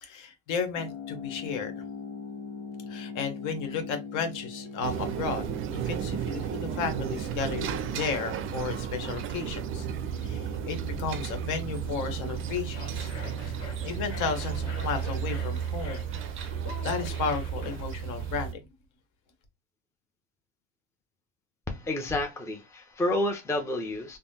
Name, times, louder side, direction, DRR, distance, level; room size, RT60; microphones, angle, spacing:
voice 1, 0.0-1.8 2.9-9.9 10.2-13.1 13.4-13.5 13.8-16.0 16.4-16.5 16.8-18.6, left 5 dB, 55° left, 1.1 m, -33 dB
sound 1, 0.7-15.5, left 5 dB, 90° left, 0.9 m, -44 dB
sound 2, 4.8-18.5, right 8 dB, 35° right, 0.4 m, -33 dB
sound 3, 12.2-18.5, left 4 dB, 40° left, 1.4 m, -46 dB
voice 2, 21.7-24.2, left 1 dB, 10° left, 0.6 m, -30 dB
3.3 x 2.0 x 2.8 m
hypercardioid pair, 90°, 36 cm